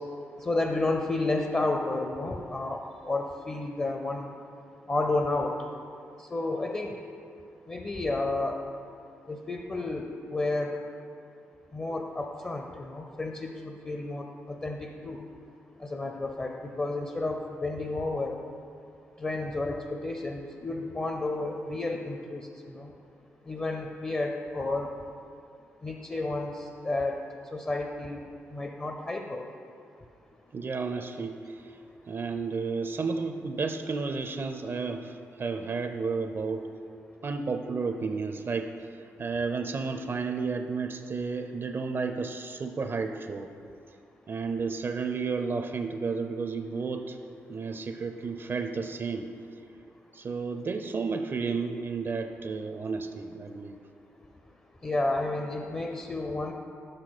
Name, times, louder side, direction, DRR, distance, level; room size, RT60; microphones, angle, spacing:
voice 1, 0.4-4.3 4.9-5.6 6.3-7.0 7.7-8.6 9.3-10.8 11.7-15.2 15.8-18.4 19.2-22.4 22.7-22.9 23.5-24.9 25.8-26.5 26.8-27.2 27.5-28.2 28.5-29.4 54.8-56.5, left 2 dB, 25° left, 3 dB, 0.5 m, -31 dB
voice 2, 30.5-31.8 32.1-36.7 37.2-43.5 44.3-47.2 47.5-49.3 50.1-53.8, right 4 dB, 45° right, 7 dB, 0.4 m, -32 dB
6.5 x 5.8 x 4.0 m, 2.5 s
cardioid pair, 65°, 5 cm